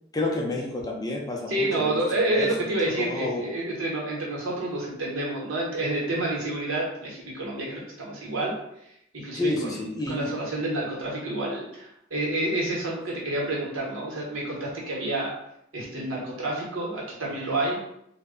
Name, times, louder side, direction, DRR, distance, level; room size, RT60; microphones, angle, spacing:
voice 1, 0.1-2.0 2.3-3.4 9.3-10.3, left 2 dB, 20° left, -1 dB, 0.4 m, -30 dB
voice 2, 1.5-8.5 9.1-9.8 10.1-15.3 15.7-17.8, right 2 dB, 85° right, -4 dB, 0.9 m, -29 dB
2.1 x 2.0 x 3.5 m, 0.78 s
head